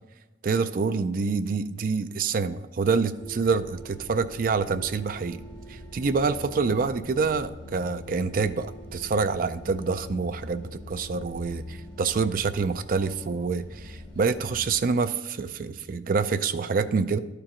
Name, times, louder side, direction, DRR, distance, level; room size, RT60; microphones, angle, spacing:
voice 1, 0.4-5.4 5.7-17.2, right 4 dB, 50° right, 11 dB, 0.4 m, -26 dB
sound 1, 3.2-14.8, equal, 25° left, 1.8 m, -43 dB
12.0 x 4.5 x 3.8 m, 1.1 s
head